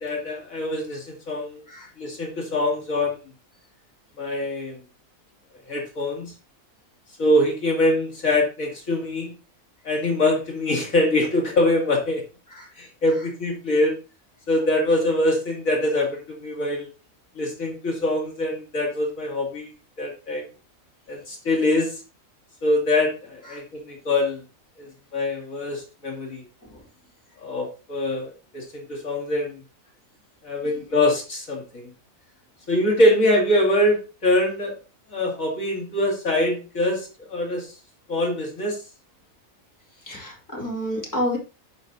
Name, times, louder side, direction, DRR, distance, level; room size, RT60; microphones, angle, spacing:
voice 1, 0.0-1.6 2.0-3.2 4.2-4.8 5.7-6.3 7.2-9.3 9.8-12.2 12.8-14.0 14.5-16.9 17.4-19.7 20.0-20.4 21.1-22.0 22.6-24.4 24.8-26.4 27.4-29.6 30.4-31.9 32.7-34.7 35.1-37.7 38.1-38.8, left 1 dB, 75° left, -1 dB, 3.0 m, -24 dB
voice 2, 40.0-41.4, equal, 15° left, -3 dB, 3.0 m, -31 dB
12.0 x 6.2 x 2.8 m, 0.31 s
omnidirectional pair, 1.4 m